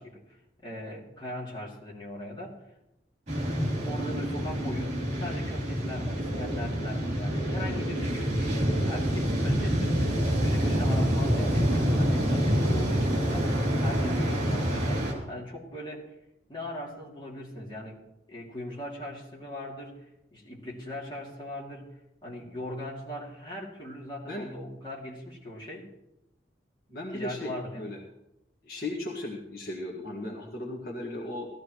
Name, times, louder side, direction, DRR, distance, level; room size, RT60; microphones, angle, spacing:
voice 1, 0.0-2.6 3.8-16.1 16.5-18.0 18.3-20.0 20.3-21.9 22.2-25.9 27.1-27.9, left 1 dB, 25° left, -4 dB, 2.5 m, -39 dB
sound 1, 3.3-15.1, equal, 40° right, 3.4 m, -27 dB
voice 2, 26.9-28.0 28.6-31.5, left 1 dB, 55° left, -1 dB, 1.7 m, -36 dB
17.0 x 13.5 x 3.1 m, 0.88 s
head